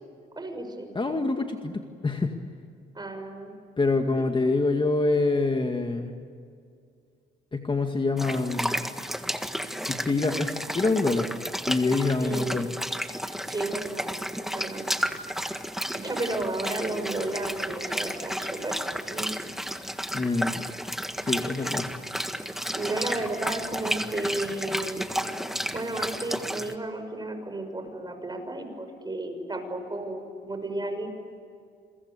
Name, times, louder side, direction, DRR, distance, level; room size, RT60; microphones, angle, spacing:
voice 1, 0.4-0.9 2.9-3.5 12.2-12.6 13.5-14.8 15.9-19.3 22.7-25.0 25.7-31.1, right 2 dB, 20° right, 6 dB, 6.2 m, -33 dB
voice 2, 0.9-2.3 3.8-6.1 7.5-8.8 9.9-11.3 11.6-12.7 20.1-20.5 21.2-21.9, left 3 dB, 25° left, 4 dB, 2.1 m, -26 dB
sound 1, 8.2-26.7, equal, ahead, 1.6 m, -32 dB
27.5 x 23.5 x 8.5 m, 2.3 s
cardioid pair, 90°, 20 cm